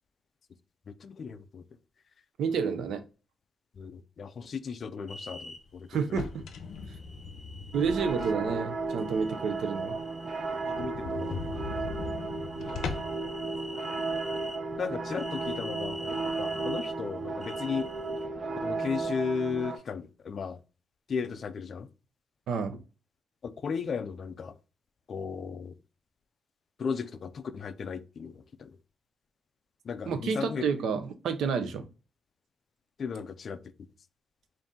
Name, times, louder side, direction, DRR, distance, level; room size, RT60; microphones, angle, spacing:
voice 1, 0.9-1.6 3.7-6.3 10.7-11.5 14.8-17.9 18.6-20.6 21.1-21.9 23.4-24.6 25.1-25.7 26.8-28.8 29.8-30.6 33.0-33.6, left 6 dB, 40° left, 0.3 m, -35 dB
voice 2, 2.4-3.0 5.9-6.4 7.7-10.0 22.5-22.8 30.1-31.8, right 6 dB, 85° right, 0.6 m, -29 dB
sound 1, 5.1-5.6 6.7-8.3 8.9-10.9 11.2-14.6 15.1-16.9 17.4-18.2, left 1 dB, ahead, 1.1 m, -46 dB
sound 2, 6.0-8.6 9.0-9.1 9.5-9.6 9.9-10.0 10.2-10.3 10.7-13.3, left 5 dB, 85° left, 0.6 m, -39 dB
sound 3, 7.7-19.8, right 3 dB, 35° right, 0.5 m, -34 dB
4.1 x 2.6 x 3.6 m
wide cardioid pair, 180°, 0 cm